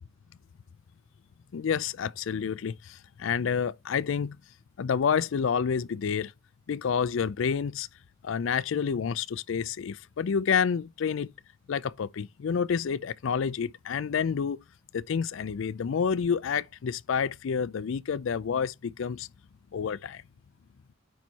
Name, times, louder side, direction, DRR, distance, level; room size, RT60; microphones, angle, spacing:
voice 1, 1.5-4.4 4.8-6.3 6.7-7.9 8.2-11.3 11.7-14.6 14.9-19.3 19.7-20.2, left 6 dB, 65° left, 0.4 m, -29 dB
9.1 x 4.5 x 4.0 m
head